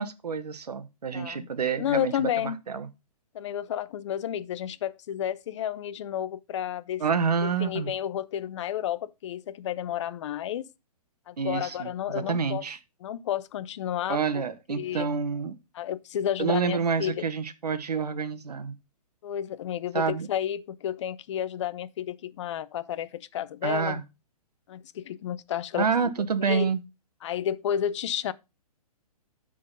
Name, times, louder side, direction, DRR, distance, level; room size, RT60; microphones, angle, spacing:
voice 1, 0.0-2.3 2.7-2.9 7.0-7.9 11.4-12.8 14.1-15.6 16.4-18.7 19.9-20.3 23.6-24.0 25.8-26.8, right 5 dB, 80° right, 1.1 m, -28 dB
voice 2, 1.1-1.5 1.8-2.6 3.3-7.0 7.4-10.7 11.3-12.6 13.0-14.4 14.7-15.1 15.7-17.2 19.2-24.0 24.7-25.9 26.4-26.7 27.2-28.3, left 10 dB, 50° left, 0.5 m, -31 dB
9.7 x 3.9 x 5.2 m
hypercardioid pair, 135°, 20 cm